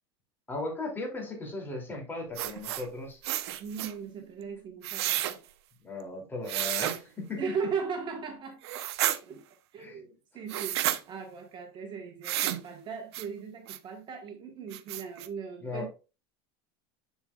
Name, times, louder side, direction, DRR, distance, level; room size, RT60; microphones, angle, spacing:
voice 1, 0.5-3.2 5.8-7.4 9.8-10.4 15.6-15.9, left 2 dB, 15° left, 3.0 m, -37 dB
sound 1, 2.4-2.9 3.2-3.9 4.8-5.3 6.5-7.0 8.6-9.2 10.5-11.0 12.2-12.6 13.1-13.3 13.7-13.8 14.3-14.4 14.7-15.3, right 13 dB, 80° right, 0.7 m, -31 dB
voice 2, 3.5-5.4 7.3-8.6 9.2-9.4 9.7-10.1 10.3-15.9, right 6 dB, 35° right, 1.5 m, -38 dB
7.2 x 6.9 x 2.5 m
supercardioid pair, 125°, 13 cm